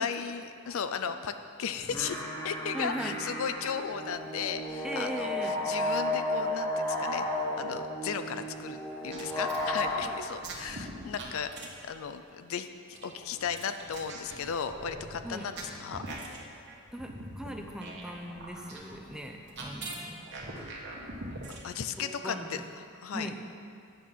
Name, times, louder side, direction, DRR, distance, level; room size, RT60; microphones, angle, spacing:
voice 1, 0.0-1.3 1.6-7.3 7.6-8.8 9.0-11.5 11.8-12.7 13.0-16.0 21.6-22.6 23.0-23.3, left 7 dB, 65° left, 9 dB, 0.4 m, -35 dB
sound 1, 1.7-10.0, left 1 dB, 10° left, 1.1 m, -33 dB
voice 2, 2.7-3.2 4.8-5.6 10.1-10.2 15.2-15.5 16.9-20.2 22.0-22.6 23.1-23.4, equal, 5° right, 3 dB, 0.5 m, -39 dB
sound 2, 9.0-12.0 12.9-21.6, right 1 dB, 50° right, 1.2 m, -43 dB
9.3 x 6.6 x 5.7 m, 2.3 s
head